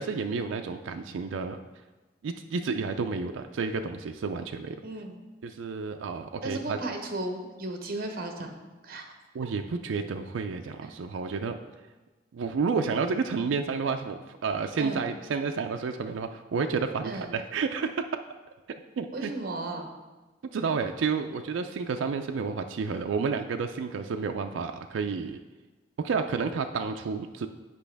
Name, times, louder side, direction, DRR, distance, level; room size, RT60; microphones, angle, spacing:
voice 1, 0.0-1.6 2.2-4.8 5.4-6.8 9.3-11.6 12.3-18.0 18.7-19.3 20.5-25.4 26.0-27.5, right 5 dB, 75° right, 6 dB, 0.4 m, -30 dB
voice 2, 4.8-5.2 6.4-8.5 8.8-9.0 10.8-10.9 14.8-15.1 17.0-17.3 19.1-19.9, right 2 dB, 50° right, 4 dB, 0.9 m, -35 dB
8.4 x 5.2 x 3.4 m, 1.2 s
head